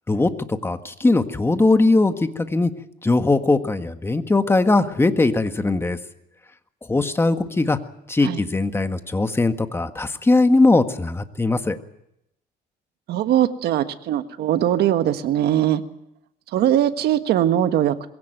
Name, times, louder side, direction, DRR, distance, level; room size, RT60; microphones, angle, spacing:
voice 1, 0.1-2.7 3.0-6.0 6.9-7.8 8.1-11.8, left 2 dB, 15° left, 8 dB, 1.6 m, -20 dB
voice 2, 13.1-15.8 16.5-18.1, right 11 dB, 70° right, 9 dB, 1.5 m, -20 dB
22.0 x 16.5 x 9.2 m, 0.80 s
cardioid pair, 110°, 17 cm